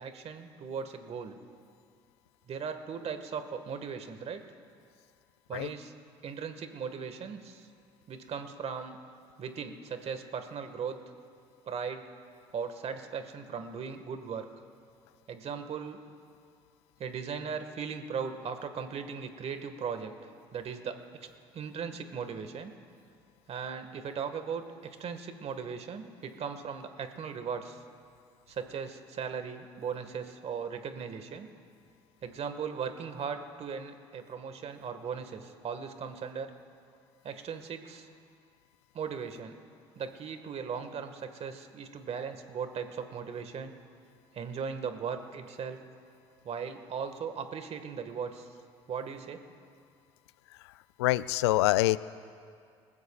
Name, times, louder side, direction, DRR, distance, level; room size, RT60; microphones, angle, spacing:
voice 1, 0.0-1.4 2.5-4.4 5.5-5.9 6.2-7.7 8.1-9.0 9.4-11.0 11.7-12.0 12.5-14.5 15.3-16.0 17.0-20.1 20.5-21.0 21.5-22.7 23.5-27.8 28.5-31.5 32.2-36.5 37.2-38.1 38.9-39.5 39.9-43.7 44.3-45.8 46.4-48.5 48.9-49.4, right 6 dB, 50° right, 8 dB, 1.7 m, -38 dB
voice 2, 51.0-52.0, left 17 dB, 80° left, 18 dB, 0.4 m, -25 dB
29.5 x 15.5 x 2.4 m, 2.3 s
hypercardioid pair, 60°, 14 cm